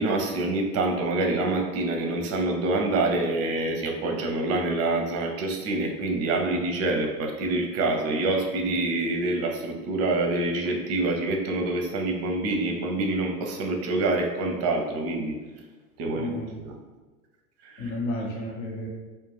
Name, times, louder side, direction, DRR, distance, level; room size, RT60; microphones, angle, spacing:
voice 1, 0.0-15.4 16.0-16.8 17.6-17.9, right 2 dB, 35° right, 2 dB, 0.5 m, -26 dB
voice 2, 16.1-16.5 17.8-18.9, left 1 dB, 70° left, -1 dB, 0.9 m, -32 dB
2.4 x 2.1 x 3.2 m, 1.3 s
hypercardioid pair, 85°, 44 cm